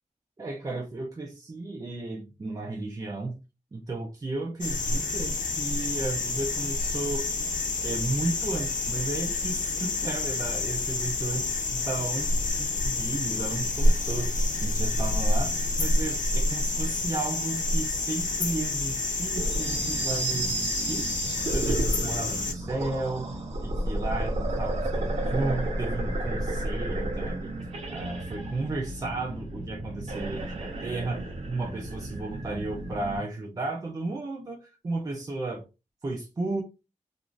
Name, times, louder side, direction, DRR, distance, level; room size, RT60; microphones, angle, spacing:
voice 1, 0.4-3.4 3.7-7.3 7.8-14.3 14.6-21.1 21.5-23.3 23.6-27.6 27.9-35.6 36.0-36.6, right 2 dB, 30° right, 0.5 m, -34 dB
sound 1, 4.6-22.5, left 2 dB, 85° left, 0.7 m, -28 dB
sound 2, 19.4-33.2, right 1 dB, 55° right, 0.9 m, -32 dB
2.6 x 2.5 x 3.0 m
wide cardioid pair, 155°, 13 cm